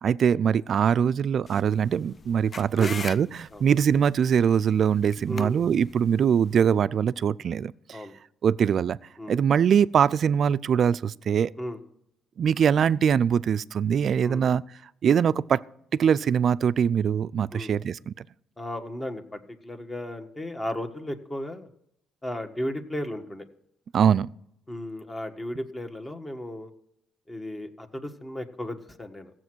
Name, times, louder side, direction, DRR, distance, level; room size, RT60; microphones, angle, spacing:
voice 1, 0.0-8.0 8.4-9.0 9.3-11.5 12.4-14.6 15.0-15.6 15.9-18.1 23.9-24.3, right 8 dB, 60° right, 0.4 m, -22 dB
sound 1, 1.5-6.6, left 5 dB, 40° left, 0.4 m, -42 dB
voice 2, 18.6-21.7 22.2-23.5 24.7-26.7 27.3-29.3, left 1 dB, 20° left, 1.4 m, -35 dB
15.0 x 7.6 x 6.2 m
cardioid pair, 90°, 0 cm